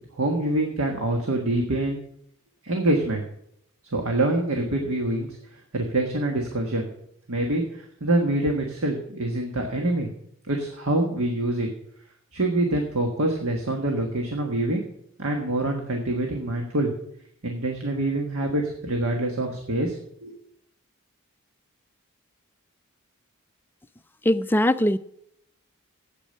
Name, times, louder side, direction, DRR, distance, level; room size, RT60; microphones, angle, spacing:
voice 1, 0.1-2.0 2.6-3.2 3.9-5.3 5.7-6.9 7.3-10.1 10.5-11.7 12.3-14.8 15.2-16.9 17.4-20.3, right 1 dB, 70° right, 1.5 m, -25 dB
voice 2, 24.3-25.0, left 1 dB, 10° left, 0.3 m, -20 dB
8.6 x 8.4 x 6.6 m
head